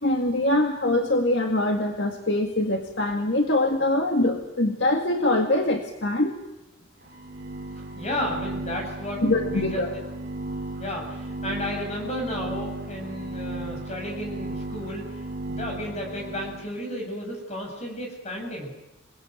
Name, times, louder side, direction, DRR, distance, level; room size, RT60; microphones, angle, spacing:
voice 1, 0.0-6.4 9.2-10.0, left 1 dB, 65° left, 3 dB, 2.0 m, -23 dB
sound 1, 7.0-16.7, right 2 dB, 55° right, 2.9 m, -35 dB
voice 2, 8.0-10.0 10.8-15.2 15.5-18.7, left 1 dB, 35° left, 1 dB, 7.4 m, -33 dB
27.0 x 19.0 x 9.3 m, 0.92 s
head